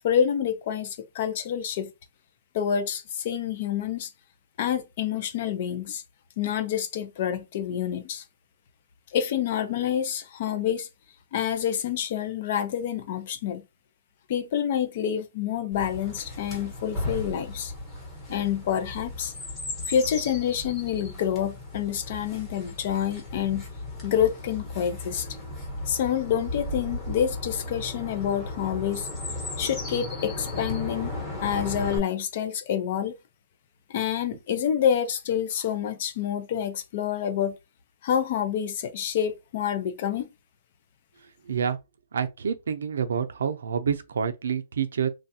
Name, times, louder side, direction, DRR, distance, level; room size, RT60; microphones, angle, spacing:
voice 1, 0.0-1.9 2.5-4.1 4.6-6.0 6.4-8.2 9.1-10.9 11.3-13.6 14.3-17.7 18.3-19.3 19.9-23.6 24.0-25.3 25.9-29.1 29.6-31.1 31.4-33.1 33.9-37.5 38.0-40.3, left 9 dB, 40° left, 0.5 m, -27 dB
Chirp tweet, 15.7-32.0, left 2 dB, 15° left, 1.1 m, -36 dB
voice 2, 41.5-41.8 42.1-45.1, right 7 dB, 90° right, 0.5 m, -28 dB
3.2 x 2.3 x 2.7 m
hypercardioid pair, 170°, 0 cm